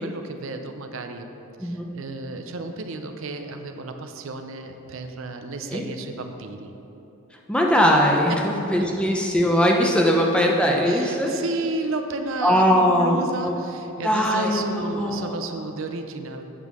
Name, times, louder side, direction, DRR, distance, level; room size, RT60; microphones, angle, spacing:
voice 1, 0.0-1.3 1.6-6.7 8.3-8.5 10.9-16.5, right 3 dB, 65° right, 6 dB, 0.6 m, -32 dB
voice 2, 7.5-11.3 12.4-13.6 14.0-15.4, equal, 5° left, 0 dB, 0.6 m, -20 dB
8.4 x 5.4 x 6.1 m, 3.0 s
head